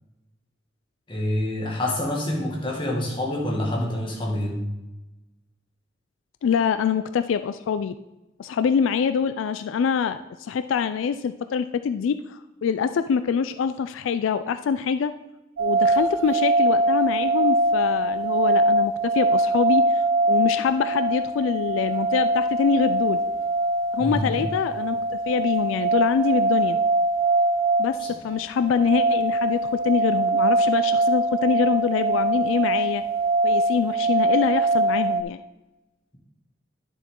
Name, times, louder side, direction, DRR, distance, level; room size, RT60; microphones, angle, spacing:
voice 1, 1.1-4.7 24.0-24.5 28.0-28.2, left 1 dB, 25° left, -3 dB, 1.9 m, -27 dB
voice 2, 6.4-8.0 8.4-15.1 15.6-20.0 20.3-23.2 23.9-26.8 27.8-33.0 33.4-35.4, left 6 dB, 75° left, 11 dB, 0.3 m, -25 dB
sound 1, 15.6-35.2, right 2 dB, 75° right, 0.5 m, -23 dB
10.5 x 7.0 x 3.7 m, 1.0 s
head